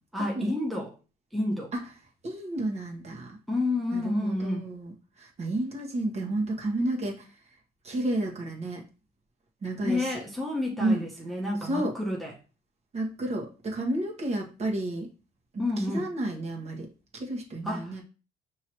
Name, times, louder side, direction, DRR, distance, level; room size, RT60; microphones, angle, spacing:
voice 1, 0.1-0.9 1.3-1.7 3.5-4.7 9.8-12.4 15.6-16.1 17.6-18.0, left 2 dB, ahead, 0.9 m, -30 dB
voice 2, 2.2-3.4 3.9-4.9 5.2-7.2 7.8-8.8 9.6-10.0 10.8-11.0 11.6-11.9 12.9-15.1 15.5-15.7 15.9-16.9 17.1-18.0, right 1 dB, 40° right, 1.4 m, -31 dB
5.6 x 3.0 x 3.1 m
cardioid pair, 110°, 17 cm